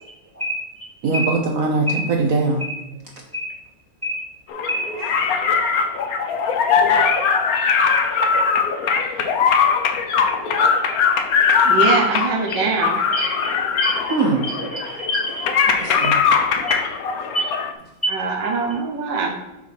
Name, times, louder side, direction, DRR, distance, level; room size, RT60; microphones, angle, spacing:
voice 1, 1.0-2.7 5.0-5.2 12.1-12.2 14.1-14.5 14.9-15.1 15.7-16.2 17.2-17.3 18.5-18.6, right 3 dB, 60° right, 2 dB, 1.1 m, -22 dB
sound 1, 4.5-17.7, left 6 dB, 60° left, 1.1 m, -20 dB
voice 2, 11.6-12.9 18.1-19.3, right 5 dB, 80° right, 0 dB, 1.6 m, -22 dB
voice 3, 13.1-14.1 14.4-14.8 15.1-15.4 16.0-16.1 16.7-16.8 17.3-17.4 18.0-18.1, equal, 10° right, -3 dB, 1.5 m, -26 dB
6.3 x 4.6 x 5.7 m, 0.98 s
omnidirectional pair, 1.9 m